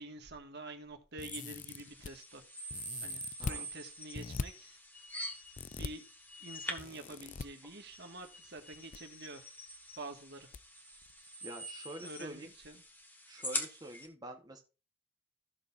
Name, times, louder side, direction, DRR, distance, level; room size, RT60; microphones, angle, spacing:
voice 1, 0.0-2.7 3.0-4.8 5.8-6.0 6.4-9.5 10.0-10.5 12.0-12.8, right 2 dB, 50° right, 1.8 m, -48 dB
sound 1, 1.2-2.1 2.7-3.6 4.1-4.5 5.6-5.9 6.8-7.5 8.6-9.0 9.3-9.4 10.5-10.6 11.0-11.1, left 4 dB, 35° left, 0.4 m, -41 dB
sound 2, 1.3-14.1, equal, 10° left, 1.6 m, -45 dB
voice 2, 11.4-12.5 13.3-14.6, right 1 dB, 20° right, 1.2 m, -47 dB
15.5 x 6.6 x 2.6 m
head